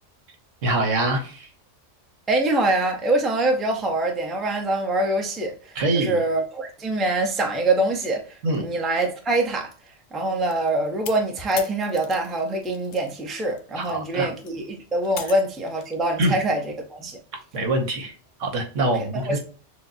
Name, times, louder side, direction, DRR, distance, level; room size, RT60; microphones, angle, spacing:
voice 1, 0.6-1.5 5.7-6.2 8.4-8.7 13.8-14.3 16.2-16.4 17.5-18.1 18.4-19.4, right 2 dB, 75° right, 1.4 m, -24 dB
voice 2, 2.3-8.2 8.6-9.7 10.1-17.2 18.8-19.4, right 2 dB, ahead, 0.5 m, -24 dB
sound 1, 10.5-13.1 13.4-16.0, left 8 dB, 70° left, 0.9 m, -40 dB
6.4 x 2.2 x 2.6 m
omnidirectional pair, 1.3 m